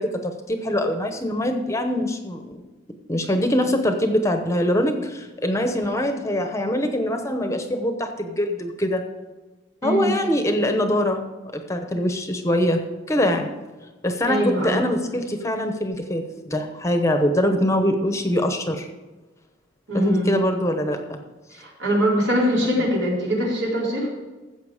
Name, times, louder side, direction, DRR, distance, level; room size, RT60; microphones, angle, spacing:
voice 1, 0.0-2.6 3.1-9.0 9.8-11.3 11.5-12.8 13.1-13.5 14.0-18.9 19.9-21.2, left 1 dB, 15° left, 6 dB, 0.9 m, -23 dB
voice 2, 9.8-10.1 14.3-14.8 19.9-20.4 21.5-24.1, equal, 75° right, -3 dB, 4.3 m, -22 dB
14.0 x 7.8 x 5.0 m, 1.2 s
head